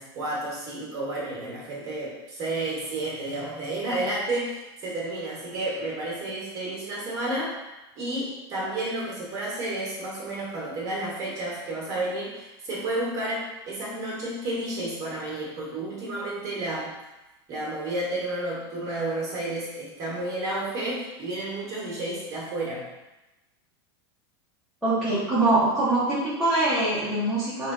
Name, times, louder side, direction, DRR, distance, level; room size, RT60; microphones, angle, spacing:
voice 1, 0.0-7.5 8.0-17.0 17.5-22.9, right 1 dB, 25° right, -5 dB, 0.9 m, -31 dB
voice 2, 24.8-27.7, right 2 dB, ahead, -13 dB, 0.6 m, -23 dB
3.1 x 2.2 x 3.6 m, 1.0 s
supercardioid pair, 170°, 14 cm